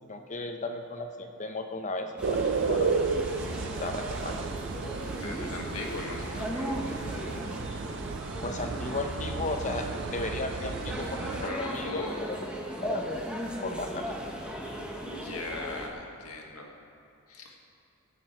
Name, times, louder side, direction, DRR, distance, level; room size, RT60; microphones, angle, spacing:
voice 1, 0.0-2.9 3.6-4.5 8.4-12.5 12.8-13.1 13.6-14.4, left 2 dB, 35° left, 5 dB, 0.8 m, -35 dB
sound 1, 2.2-15.9, equal, 5° right, 1.2 m, -37 dB
sound 2, 2.2-11.5, right 4 dB, 55° right, 0.5 m, -33 dB
voice 2, 5.2-7.0 11.4-12.2 15.1-16.7 17.3-17.6, left 2 dB, 80° left, 1 dB, 1.7 m, -39 dB
17.5 x 8.6 x 4.5 m, 2.6 s
head